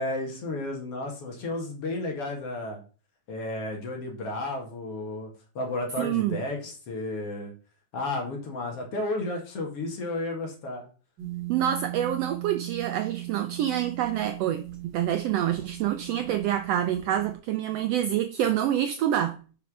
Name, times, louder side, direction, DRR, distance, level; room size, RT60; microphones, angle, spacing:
voice 1, 0.0-2.8 3.3-5.3 5.6-7.5 7.9-10.9, left 2 dB, 55° left, 2.5 m, -32 dB
voice 2, 6.0-6.4 11.5-19.4, right 11 dB, 80° right, 1.4 m, -27 dB
sound 1, 11.2-17.4, right 17 dB, 40° right, 1.6 m, -38 dB
5.8 x 5.2 x 6.1 m
omnidirectional pair, 3.4 m